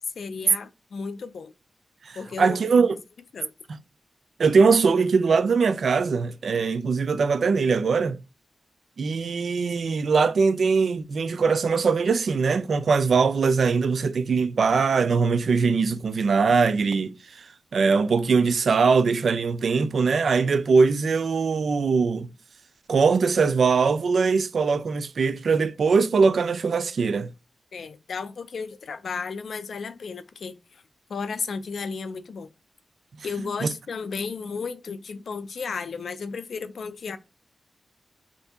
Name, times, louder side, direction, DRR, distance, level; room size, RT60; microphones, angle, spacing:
voice 1, 0.2-1.5 2.2-2.6 3.3-3.5 27.7-30.8 31.1-32.5 33.2-37.2, left 5 dB, 80° left, 0.3 m, -34 dB
voice 2, 2.1-2.9 4.4-8.2 9.0-17.5 17.7-22.3 22.9-27.3 33.6-33.7, right 5 dB, 75° right, 0.3 m, -21 dB
2.7 x 2.6 x 3.4 m
wide cardioid pair, 85°, 0 cm